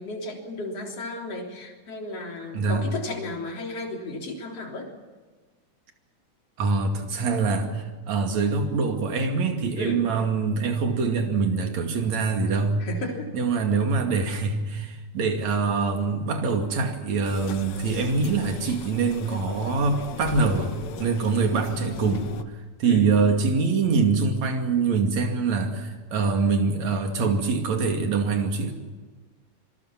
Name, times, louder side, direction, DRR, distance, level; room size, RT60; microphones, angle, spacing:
voice 1, 0.0-4.9 9.8-10.0 12.8-13.3 18.6-18.7 22.8-23.1, left 2 dB, 50° left, 0 dB, 4.5 m, -34 dB
voice 2, 6.6-12.8 13.3-22.2 22.8-28.7, right 4 dB, 60° right, 4 dB, 3.6 m, -24 dB
sound 1, 17.2-22.4, left 8 dB, 65° left, 2.4 m, -38 dB
26.5 x 22.5 x 6.0 m, 1.3 s
omnidirectional pair, 3.6 m